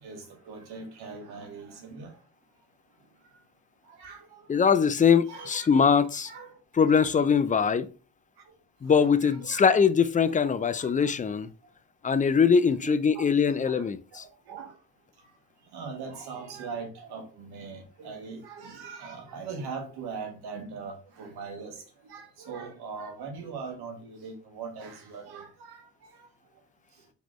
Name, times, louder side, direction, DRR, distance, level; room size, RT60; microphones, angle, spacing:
voice 1, 0.0-2.2 3.8-4.5 5.3-5.9 6.2-6.6 6.9-7.2 7.5-7.7 8.4-8.5 8.9-9.7 10.3-10.5 10.8-11.1 12.6-14.8 15.7-26.3, right 5 dB, 90° right, 1.1 m, -41 dB
voice 2, 4.5-6.3 6.8-7.9 8.8-11.5 12.0-14.0, left 6 dB, 20° left, 0.3 m, -22 dB
3.9 x 3.1 x 3.1 m
cardioid pair, 60°, 38 cm